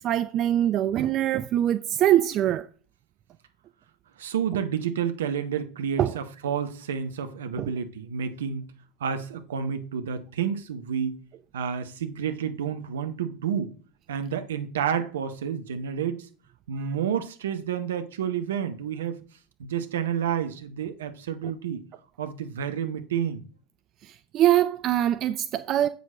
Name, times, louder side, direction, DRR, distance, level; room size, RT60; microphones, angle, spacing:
voice 1, 0.0-2.7 6.0-6.1 7.6-7.7 21.4-21.5 24.3-25.9, right 12 dB, 40° right, 0.5 m, -23 dB
voice 2, 4.2-8.7 9.0-11.2 11.5-13.7 14.1-16.3 16.7-19.2 19.6-21.8 22.2-23.4, right 8 dB, 70° right, 1.0 m, -30 dB
8.3 x 6.9 x 3.8 m
figure-of-eight pair, 75°, 0 cm